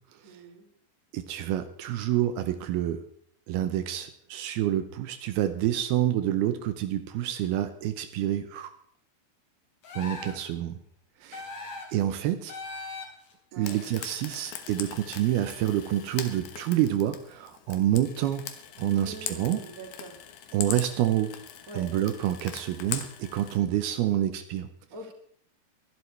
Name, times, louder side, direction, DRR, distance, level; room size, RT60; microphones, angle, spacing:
voice 1, 0.2-0.7 13.5-13.8 18.9-20.2 21.7-21.9 24.9-25.1, right 2 dB, 25° right, -1 dB, 3.3 m, -44 dB
voice 2, 1.1-3.0 3.5-8.7 10.0-10.8 11.2-11.4 11.9-12.6 13.6-18.4 18.8-19.6 20.5-21.4 21.7-24.7, right 12 dB, 80° right, 9 dB, 2.7 m, -28 dB
sound 1, 9.8-10.5 11.3-12.0 12.5-13.3, left 3 dB, 50° left, 4.1 m, -39 dB
Frying (food), 13.6-23.6, left 9 dB, 90° left, 3.3 m, -41 dB
22.0 x 11.5 x 3.3 m, 0.63 s
omnidirectional pair, 4.4 m